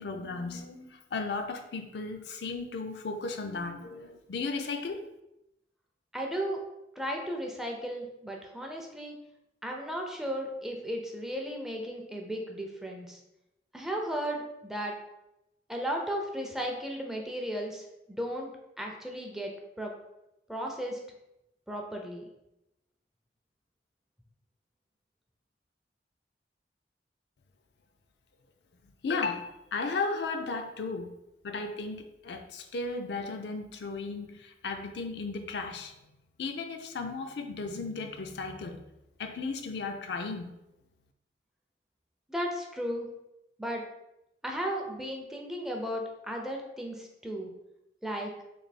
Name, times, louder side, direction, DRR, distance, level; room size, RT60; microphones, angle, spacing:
voice 1, 0.0-5.0 29.0-31.1 31.4-35.9 36.4-38.8 39.2-40.5, left 4 dB, 70° left, 5 dB, 0.4 m, -35 dB
voice 2, 6.1-6.6 7.0-9.2 9.6-13.2 13.7-14.9 15.7-18.5 18.8-19.9 20.5-21.0 21.7-22.3 42.3-43.1 43.6-43.8 44.4-47.5 48.0-48.3, equal, 5° right, 1 dB, 0.4 m, -35 dB
3.3 x 2.6 x 4.1 m, 0.90 s
head